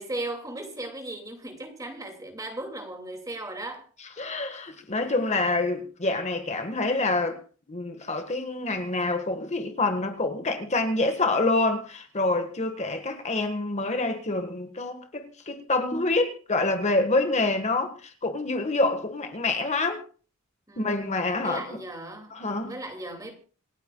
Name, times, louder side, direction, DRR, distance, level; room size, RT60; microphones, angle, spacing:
voice 1, 0.0-3.9 20.7-23.3, right 2 dB, 15° right, 2.6 m, -37 dB
voice 2, 4.2-7.4 7.7-20.0 20.8-21.6 22.3-22.7, left 2 dB, 35° left, 1.6 m, -27 dB
27.5 x 9.3 x 2.4 m
head